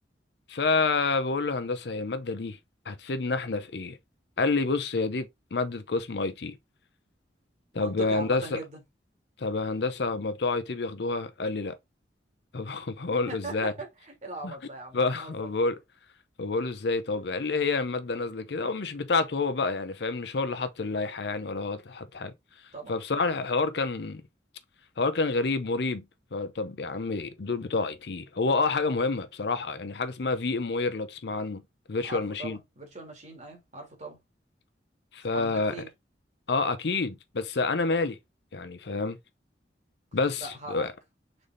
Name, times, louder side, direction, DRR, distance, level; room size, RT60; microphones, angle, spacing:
voice 1, 0.5-2.6 2.9-4.0 4.4-6.6 7.7-8.6 9.4-11.8 12.5-13.7 14.4-14.5 14.9-15.8 16.4-22.3 22.9-24.2 25.0-26.0 26.3-31.6 31.9-32.6 35.1-35.7 36.5-38.2 38.5-39.2 40.1-40.9, left 3 dB, 65° left, 0.6 m, -28 dB
voice 2, 7.7-8.8 13.3-15.5 22.7-22.9 32.0-34.2 35.3-35.9 40.4-40.9, right 2 dB, 40° right, 1.8 m, -40 dB
4.0 x 3.4 x 3.8 m
head